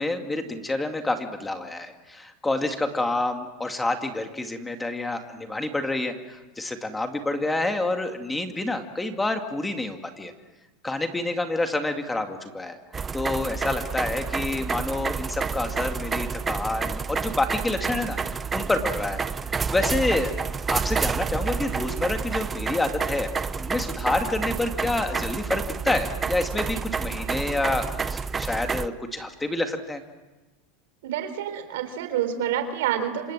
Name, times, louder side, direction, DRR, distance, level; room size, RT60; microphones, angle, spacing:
voice 1, 0.0-10.3 10.8-12.8 13.1-18.2 18.5-19.2 19.7-20.4 20.7-30.0, left 2 dB, 10° left, 6 dB, 2.3 m, -28 dB
sound 1, 12.9-28.9, right 5 dB, 20° right, 0.8 m, -29 dB
voice 2, 31.0-33.3, right 10 dB, 80° right, 9 dB, 3.6 m, -28 dB
27.0 x 25.0 x 7.6 m, 1.2 s
supercardioid pair, 120°, 0 cm